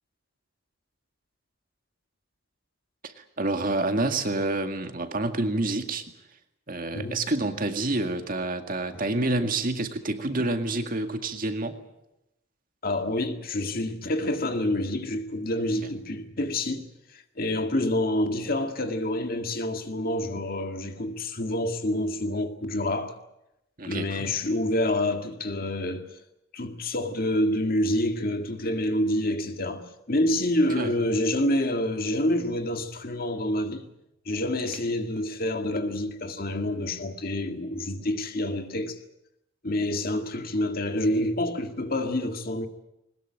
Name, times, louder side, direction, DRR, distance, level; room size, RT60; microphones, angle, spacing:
voice 1, 3.0-6.0 6.7-11.8 23.8-24.3 30.8-30.9 38.0-38.1, right 2 dB, 45° right, 2.0 m, -28 dB
voice 2, 12.8-16.8 17.1-23.1 23.9-26.1 26.5-33.9 34.3-39.0 39.6-42.7, left 1 dB, 45° left, 1.9 m, -27 dB
21.5 x 20.0 x 8.9 m
head